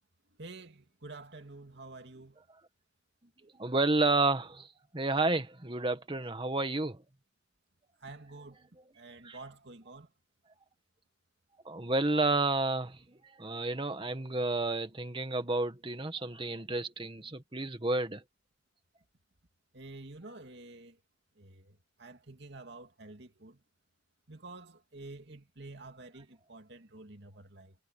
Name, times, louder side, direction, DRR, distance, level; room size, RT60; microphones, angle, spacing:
voice 1, 0.4-2.4 8.0-8.6 8.9-10.1 19.7-21.0 21.4-23.6 24.3-27.8, right 2 dB, 65° right, 2.7 m, -49 dB
voice 2, 3.4-4.7 4.9-7.0 9.2-9.4 11.6-18.2, right 2 dB, 25° right, 1.7 m, -31 dB
head